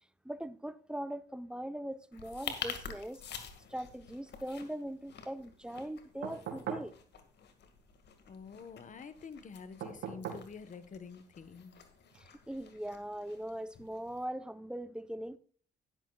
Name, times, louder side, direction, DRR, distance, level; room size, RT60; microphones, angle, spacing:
voice 1, 0.2-3.4 3.7-6.9 12.1-15.4, right 1 dB, 5° right, 0.8 m, -41 dB
sound 1, 2.1-14.2, left 7 dB, 65° left, 2.0 m, -48 dB
sound 2, 6.2-6.9 9.8-10.5 12.1-12.2, right 8 dB, 85° right, 2.2 m, -40 dB
voice 2, 8.3-11.8, left 5 dB, 45° left, 1.2 m, -48 dB
12.0 x 11.0 x 2.4 m
cardioid pair, 85°, 19 cm